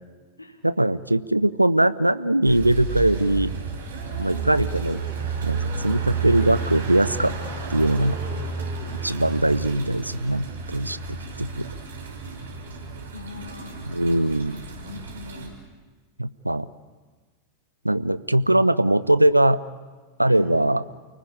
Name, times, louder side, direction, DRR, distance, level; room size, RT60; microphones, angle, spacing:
voice 1, 0.6-3.5 4.1-5.0 5.4-7.3 7.7-8.2 9.0-11.6 13.8-14.6 16.2-16.7 17.8-19.6 20.2-20.8, right 1 dB, 85° right, 16 dB, 0.7 m, -21 dB
sound 1, 2.4-15.5, right 5 dB, 65° right, 5.7 m, -32 dB
sound 2, 3.8-6.7 7.4-9.4 9.7-10.8, right 6 dB, 35° right, 7.0 m, -44 dB
voice 2, 4.2-4.6 13.1-13.7 14.5-15.6 20.3-20.6, left 2 dB, 85° left, 3 dB, 2.8 m, -40 dB
29.0 x 19.5 x 8.7 m, 1.4 s
figure-of-eight pair, 90°, 0 cm